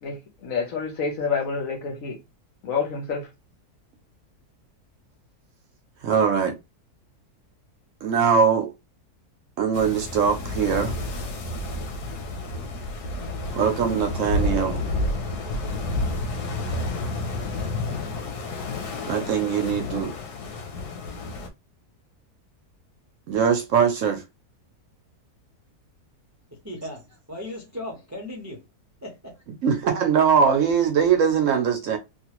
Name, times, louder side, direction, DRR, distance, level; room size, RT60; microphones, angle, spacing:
voice 1, 0.0-2.2 2.6-3.3, left 5 dB, 60° left, 1.3 m, -28 dB
voice 2, 6.0-6.5 8.0-8.7 9.6-10.9 13.5-14.8 19.1-20.1 23.3-24.2 29.6-32.0, right 7 dB, 65° right, 0.8 m, -21 dB
sound 1, 9.7-21.5, left 2 dB, 90° left, 1.4 m, -30 dB
voice 3, 26.6-28.6 29.0-29.4, left 1 dB, 20° right, 0.4 m, -37 dB
3.2 x 2.5 x 2.9 m
omnidirectional pair, 1.6 m